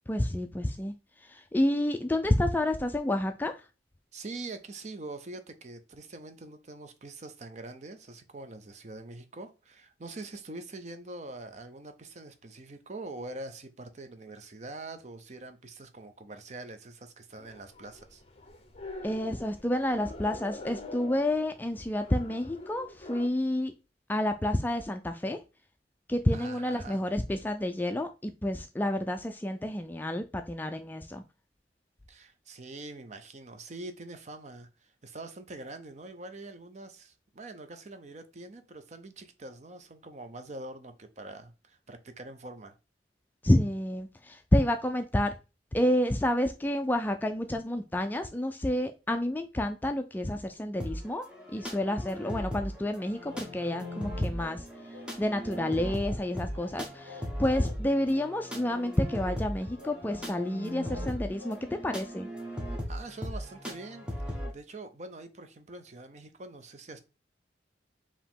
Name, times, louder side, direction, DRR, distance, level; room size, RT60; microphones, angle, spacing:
voice 1, 0.1-0.9 1.2-3.5 19.0-23.7 24.1-25.4 26.1-31.2 43.4-45.3 45.7-54.6 55.2-62.3, left 1 dB, 10° left, 0.3 m, -29 dB
voice 2, 4.1-18.2 26.3-27.0 32.1-42.7 62.9-67.0, right 2 dB, 40° right, 0.6 m, -44 dB
sound 1, 17.4-23.3, left 2 dB, 35° left, 0.7 m, -46 dB
sound 2, 50.8-64.5, equal, 5° right, 1.0 m, -38 dB
Singing, 53.3-61.9, left 3 dB, 80° right, 1.6 m, -51 dB
4.9 x 2.9 x 3.6 m
head